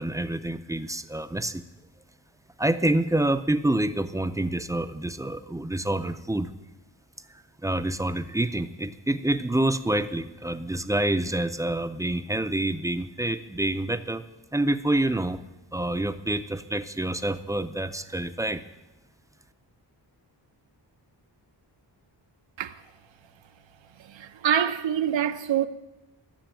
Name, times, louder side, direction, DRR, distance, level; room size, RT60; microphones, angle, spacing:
voice 1, 0.0-1.6 2.6-6.5 7.6-14.2 14.5-15.4 15.7-18.6, right 1 dB, 10° right, 0.4 m, -27 dB
voice 2, 24.0-25.7, right 9 dB, 85° right, 0.8 m, -26 dB
13.5 x 7.1 x 8.9 m
wide cardioid pair, 165°, 44 cm